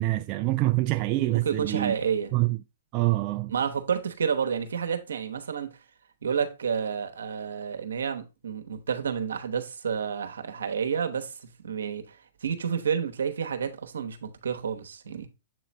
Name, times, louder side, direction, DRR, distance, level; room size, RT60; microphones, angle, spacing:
voice 1, 0.0-1.9 2.3-2.6 2.9-3.5, right 18 dB, 35° right, 0.3 m, -25 dB
voice 2, 1.3-2.3 3.5-5.8 6.2-12.2 12.4-15.3, right 7 dB, 85° right, 1.0 m, -30 dB
7.7 x 3.2 x 4.0 m
hypercardioid pair, 135°, 0 cm